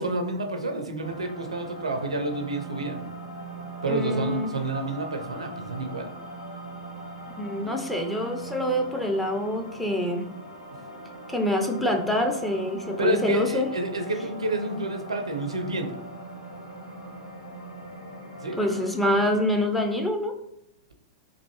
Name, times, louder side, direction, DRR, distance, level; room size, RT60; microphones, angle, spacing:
voice 1, 0.0-3.0 3.8-6.1 13.0-15.9 18.4-18.6, right 2 dB, 75° right, 5 dB, 0.5 m, -29 dB
sound 1, 1.0-19.4, right 1 dB, 85° left, 0.8 m, -41 dB
voice 2, 3.9-4.5 7.4-10.3 11.3-13.7 18.6-20.3, left 1 dB, 5° left, 2 dB, 0.4 m, -26 dB
3.2 x 2.5 x 2.9 m, 0.79 s
figure-of-eight pair, 100°, 3 cm